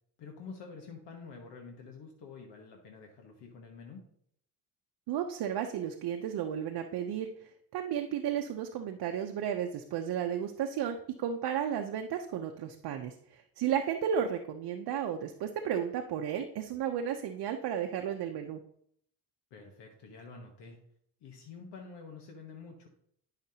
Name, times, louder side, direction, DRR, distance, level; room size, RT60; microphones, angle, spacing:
voice 1, 0.2-4.0 19.5-20.8 21.2-22.9, left 4 dB, 90° left, 2 dB, 1.3 m, -48 dB
voice 2, 5.1-18.6, right 9 dB, 65° right, 4 dB, 0.7 m, -33 dB
10.5 x 5.8 x 2.8 m, 0.68 s
cardioid pair, 125°, 40 cm